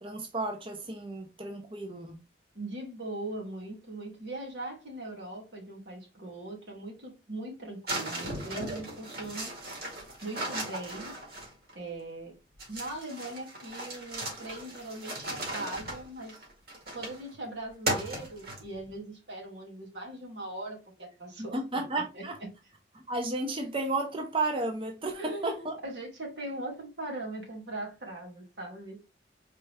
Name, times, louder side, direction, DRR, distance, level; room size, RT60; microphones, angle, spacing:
voice 1, 0.0-2.2 21.4-22.4 23.1-25.8, right 2 dB, 30° right, 0.6 m, -33 dB
voice 2, 2.5-9.5 10.2-11.2 11.7-12.4 12.7-16.5 16.9-21.8 22.1-22.2 25.2-29.0, right 2 dB, 85° right, 2.2 m, -40 dB
sound 1, 7.9-11.7 12.6-17.3 17.9-18.9, right 1 dB, 60° right, 2.0 m, -37 dB
4.5 x 3.2 x 3.4 m
head